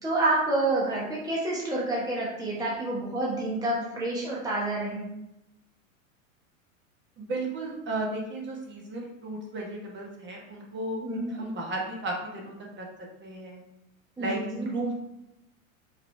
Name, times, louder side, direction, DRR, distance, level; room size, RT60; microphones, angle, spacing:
voice 1, 0.0-5.0 11.0-11.3 14.2-14.7, right 2 dB, 10° right, -5 dB, 1.0 m, -28 dB
voice 2, 7.2-11.0 11.4-12.9 13.2-13.6 14.2-15.0, right 2 dB, 25° right, -1 dB, 1.2 m, -34 dB
4.9 x 3.2 x 3.3 m, 0.88 s
hypercardioid pair, 100°, 41 cm